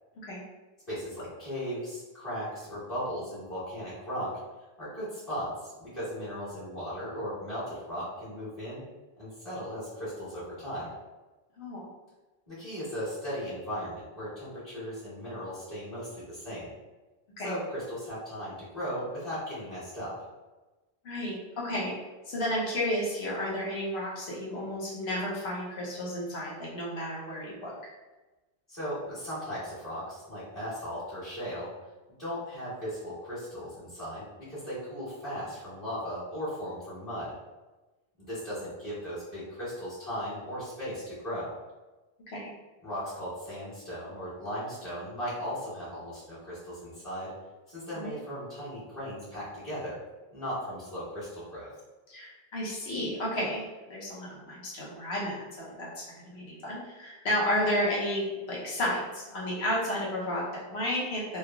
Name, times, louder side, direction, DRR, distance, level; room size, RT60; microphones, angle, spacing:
voice 1, 0.9-4.3 4.8-8.9 9.2-10.9 12.5-16.7 17.4-20.1 28.7-31.7 32.2-37.3 38.3-41.5 42.8-47.3 47.7-50.0 50.3-51.7, equal, 35° left, -16 dB, 1.5 m, -37 dB
voice 2, 21.0-21.9 22.2-27.7 42.3-42.5 47.9-48.1 52.1-61.4, left 1 dB, 85° left, -5 dB, 1.1 m, -32 dB
3.3 x 2.4 x 2.3 m, 1.1 s
omnidirectional pair, 1.1 m